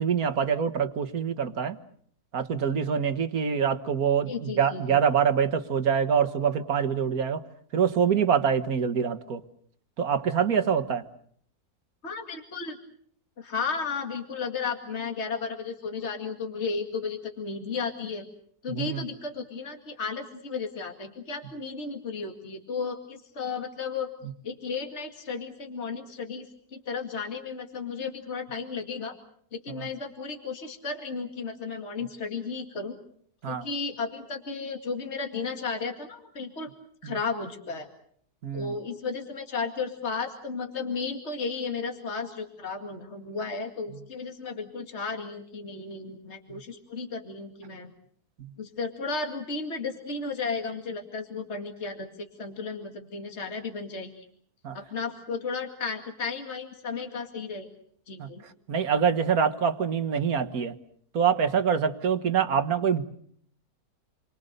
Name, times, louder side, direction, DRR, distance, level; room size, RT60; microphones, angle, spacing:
voice 1, 0.0-1.8 2.3-7.4 7.7-9.4 10.0-11.0 18.7-19.0 29.8-29.9 33.4-33.7 37.0-37.2 38.4-38.7 54.6-54.8 58.2-58.3 58.7-60.8 61.1-63.0, right 7 dB, 65° right, 10 dB, 1.9 m, -25 dB
voice 2, 4.2-4.8 12.0-12.8 13.4-18.3 18.6-24.1 24.4-29.1 29.5-33.0 33.5-36.7 37.0-37.9 38.5-47.9 48.6-54.3 54.7-57.7 58.1-58.4, left 4 dB, 45° left, 4 dB, 2.5 m, -34 dB
29.0 x 23.0 x 6.7 m, 0.62 s
omnidirectional pair, 1.7 m